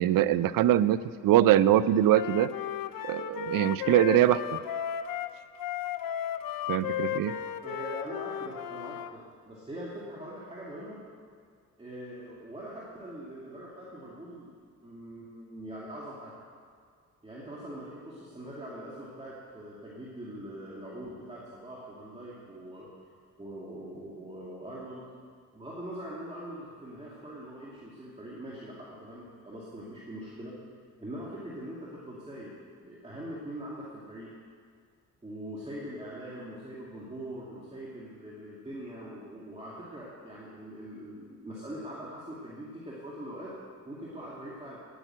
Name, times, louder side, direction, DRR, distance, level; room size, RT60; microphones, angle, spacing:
voice 1, 0.0-2.5 3.1-4.4 6.7-7.3, right 12 dB, 80° right, 16 dB, 0.5 m, -23 dB
Wind instrument woodwind instrument, 2.1-9.1, left 10 dB, 80° left, 0.6 m, -34 dB
voice 2, 7.6-11.0 11.8-14.5 14.8-16.3 17.2-22.9 23.4-25.1 25.5-30.5 31.0-32.5 32.8-34.3 35.2-43.5 43.8-44.8, right 1 dB, 20° right, -6 dB, 2.4 m, -42 dB
10.5 x 10.0 x 7.4 m, 2.1 s
cardioid pair, 95°, 33 cm